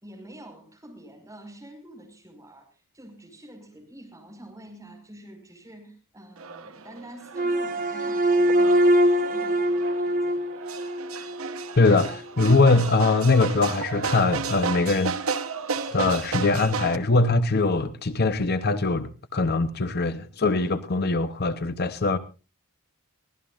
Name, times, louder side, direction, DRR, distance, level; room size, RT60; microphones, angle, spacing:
voice 1, 0.0-10.6, right 1 dB, 15° right, 5.3 m, -47 dB
sound 1, 6.4-17.0, right 5 dB, 75° right, 1.0 m, -33 dB
sound 2, 7.3-11.7, equal, 40° right, 1.2 m, -23 dB
voice 2, 11.8-15.2 15.9-22.2, left 3 dB, 50° left, 0.8 m, -22 dB
23.5 x 17.0 x 2.5 m
head